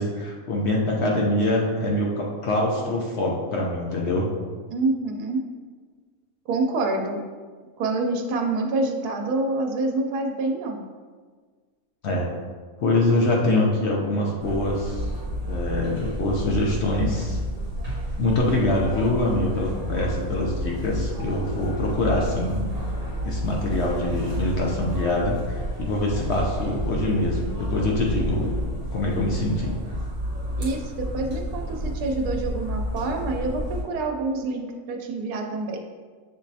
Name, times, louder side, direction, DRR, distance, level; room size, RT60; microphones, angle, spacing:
voice 1, 0.0-4.3 12.0-12.3 12.8-15.1 15.5-17.4 18.2-22.7 23.2-28.6 28.9-29.8, left 1 dB, 60° left, -2 dB, 0.7 m, -24 dB
voice 2, 4.7-5.4 6.5-7.2 7.8-10.8 30.6-35.8, right 2 dB, 85° right, 2 dB, 1.1 m, -27 dB
sound 1, 14.4-33.8, equal, 40° right, 1.2 m, -30 dB
6.5 x 3.0 x 2.7 m, 1.5 s
omnidirectional pair, 1.6 m